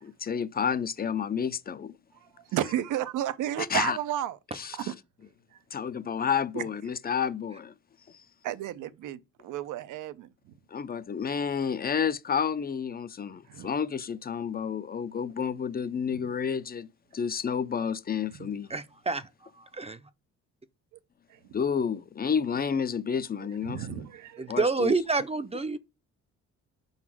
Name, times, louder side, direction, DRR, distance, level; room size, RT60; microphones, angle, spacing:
voice 1, 0.0-1.9 3.6-4.0 4.5-4.9 5.7-7.7 10.7-16.9 17.1-18.7 21.5-24.0 24.5-24.9, left 7 dB, 30° left, 0.5 m, -30 dB
voice 2, 2.5-4.4 4.7-4.9 6.5-6.6 8.4-10.3 13.5-13.7 18.4-18.5 23.6-24.5, right 12 dB, 85° right, 0.7 m, -32 dB
voice 3, 18.7-19.3 19.7-20.0 24.4-25.8, right 3 dB, 20° right, 0.6 m, -28 dB
5.8 x 4.0 x 6.0 m
cardioid pair, 90°, 30 cm